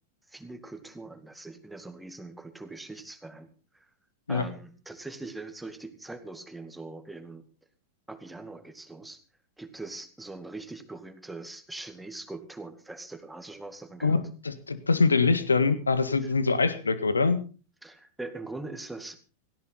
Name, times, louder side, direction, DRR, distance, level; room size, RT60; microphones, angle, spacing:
voice 1, 0.3-3.5 3.7-3.9 4.3-7.5 8.1-9.2 9.6-14.2 16.2-16.3 17.8-19.2, right 2 dB, 5° right, 9 dB, 2.1 m, -42 dB
voice 2, 14.0-17.4, left 4 dB, 75° left, 14 dB, 1.7 m, -24 dB
17.5 x 16.5 x 4.1 m, 0.36 s
figure-of-eight pair, 90°, 0 cm